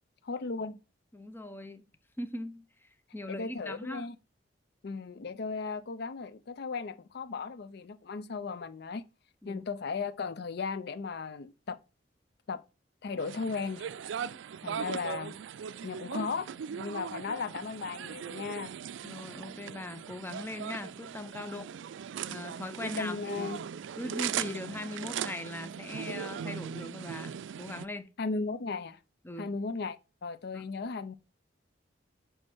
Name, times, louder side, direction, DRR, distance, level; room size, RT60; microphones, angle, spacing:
voice 1, 0.2-0.8 3.3-4.2 4.8-9.0 9.5-11.8 12.5-12.6 13.0-13.9 14.6-15.4 15.8-18.7 21.4-21.7 22.8-23.6 28.2-29.0 29.4-30.0 30.2-31.1, left 4 dB, 60° left, 0.5 m, -36 dB
voice 2, 1.1-1.8 2.2-4.1 9.4-9.6 19.0-21.7 22.3-23.5 24.0-28.1 29.2-29.5 30.5-30.6, left 1 dB, 10° left, 0.7 m, -40 dB
sound 1, 13.2-27.9, right 8 dB, 85° right, 0.4 m, -39 dB
8.8 x 3.3 x 6.0 m
head